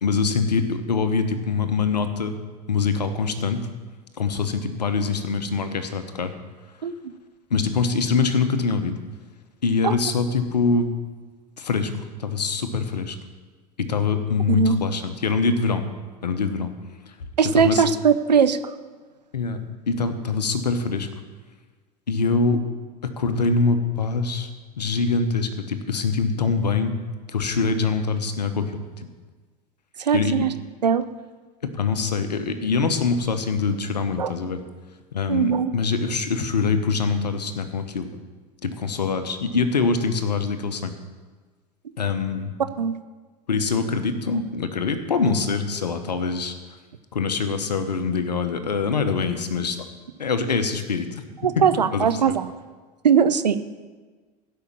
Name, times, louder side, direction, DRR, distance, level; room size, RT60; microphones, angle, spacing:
voice 1, 0.0-2.3 2.7-3.6 4.2-6.3 7.5-8.9 9.6-10.9 11.6-11.9 12.2-13.2 13.8-15.8 16.2-16.7 17.4-17.8 19.3-21.1 22.1-22.6 23.0-24.5 24.8-26.9 27.3-29.1 30.1-30.4 31.6-34.6 35.1-38.1 38.6-40.9 42.0-42.6 43.5-46.5 47.1-49.8 50.2-51.2 51.6-51.7 51.9-52.4, left 4 dB, 85° left, 9 dB, 1.1 m, -24 dB
voice 2, 17.4-18.6 30.0-30.5 30.8-31.0 34.2-34.3 35.3-35.7 42.8-43.0 51.4-52.5 53.0-53.6, right 7 dB, 85° right, 12 dB, 0.7 m, -20 dB
15.5 x 5.8 x 7.3 m, 1.4 s
figure-of-eight pair, 80°, 21 cm